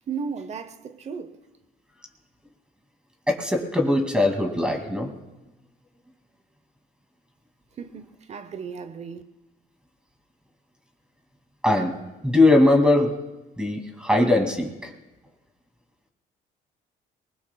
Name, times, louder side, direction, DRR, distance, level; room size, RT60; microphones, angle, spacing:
voice 1, 0.1-1.4 7.8-9.2, right 6 dB, 40° right, 0.8 m, -35 dB
voice 2, 3.3-5.1 11.6-11.9 12.2-13.1 13.6-14.9, left 2 dB, 5° right, 2.3 m, -20 dB
27.0 x 20.5 x 2.3 m
cardioid pair, 110°, 17 cm